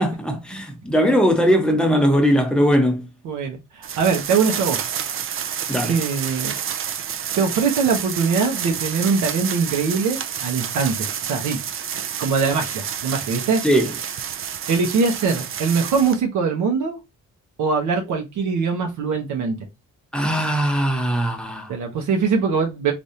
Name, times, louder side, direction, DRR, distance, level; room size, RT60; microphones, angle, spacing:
voice 1, 0.0-3.0 5.7-5.9 13.6-13.9 20.1-21.7, equal, 5° left, 0.8 m, -19 dB
voice 2, 3.2-4.8 5.9-6.5 7.3-11.6 12.2-13.6 14.3-14.4 14.7-17.0 17.6-19.6 21.7-22.9, right 5 dB, 75° right, 0.8 m, -22 dB
sound 1, 3.8-16.2, right 8 dB, 45° right, 0.5 m, -29 dB
3.4 x 2.5 x 2.7 m
cardioid pair, 90°, 30 cm